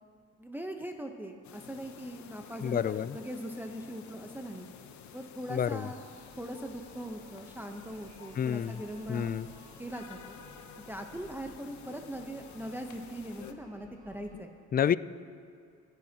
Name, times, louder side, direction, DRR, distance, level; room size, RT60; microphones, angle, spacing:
voice 1, 0.4-4.7 5.1-6.0 6.3-9.3 9.8-10.4 10.9-14.5, right 1 dB, 5° right, 3 dB, 0.9 m, -41 dB
sound 1, 1.4-13.5, left 8 dB, 70° left, 0.9 m, -51 dB
voice 2, 2.6-3.2 5.5-5.9 8.4-8.8 9.1-9.5 14.3-14.4 14.7-15.0, left 8 dB, 30° left, 16 dB, 0.4 m, -29 dB
sound 2, 6.1-14.4, right 2 dB, 25° right, 1.8 m, -57 dB
24.5 x 10.5 x 2.9 m, 2.3 s
cardioid pair, 90°, 30 cm